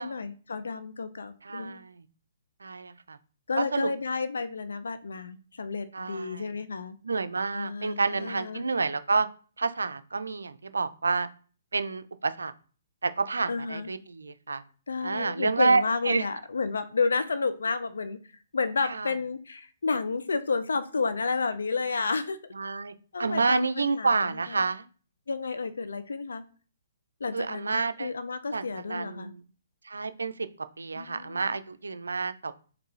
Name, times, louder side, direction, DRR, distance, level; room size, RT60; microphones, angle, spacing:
voice 1, 0.0-1.8 3.5-7.0 7.5-8.7 13.5-13.9 14.9-18.2 18.5-22.4 23.1-24.6 25.3-26.4 27.2-29.3 30.9-31.5, left 4 dB, 75° left, 11 dB, 0.4 m, -31 dB
voice 2, 1.4-2.0 2.6-3.2 3.6-3.9 5.9-6.5 7.0-9.3 9.6-11.3 11.7-12.5 13.0-14.6 15.0-16.3 18.8-19.1 22.5-24.8 27.3-28.1 28.5-29.4 29.8-30.5 30.8-32.5, right 4 dB, 80° right, 12 dB, 0.4 m, -29 dB
4.4 x 2.6 x 3.1 m, 0.40 s
figure-of-eight pair, 130°, 0 cm